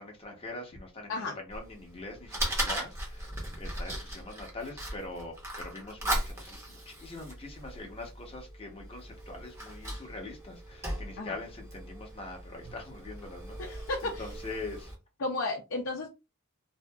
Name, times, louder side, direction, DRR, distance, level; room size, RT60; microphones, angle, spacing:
voice 1, 0.0-14.9, left 2 dB, 25° left, 0.7 m, -43 dB
Fire, 1.5-14.9, right 1 dB, 15° right, 0.8 m, -38 dB
voice 2, 13.6-14.2 15.2-16.1, left 2 dB, 60° left, 0.5 m, -33 dB
2.7 x 2.5 x 2.2 m
head